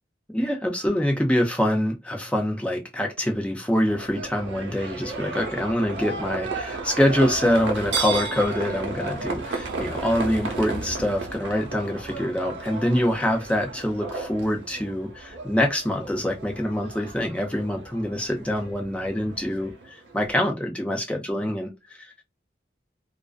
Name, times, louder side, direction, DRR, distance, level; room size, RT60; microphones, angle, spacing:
voice 1, 0.3-21.7 22.0-22.1, left 1 dB, 5° left, 0.5 m, -25 dB
Livestock farm animals working animals, 3.8-20.3, right 3 dB, 85° right, 0.7 m, -34 dB
2.4 x 2.1 x 2.4 m
head